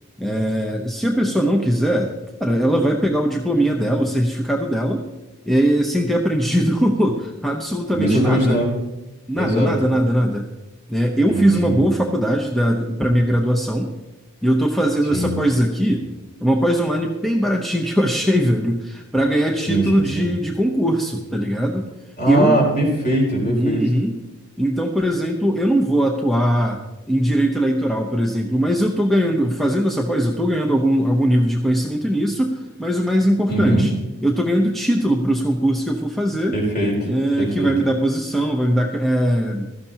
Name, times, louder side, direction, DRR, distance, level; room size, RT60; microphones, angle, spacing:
voice 1, 0.2-5.1 5.4-8.6 9.3-10.5 10.9-13.9 14.4-16.1 16.4-21.9 22.3-22.7 23.5-24.2 24.6-26.8 27.1-33.9 34.2-36.6 37.0-39.7, equal, ahead, 0 dB, 0.8 m, -20 dB
voice 2, 7.9-8.7 9.3-9.7 11.3-11.8 15.1-15.3 19.7-20.3 22.2-23.8 33.5-33.9 36.5-37.1 37.4-37.7, right 1 dB, 40° left, -2 dB, 4.1 m, -20 dB
16.5 x 13.0 x 2.9 m, 1.0 s
head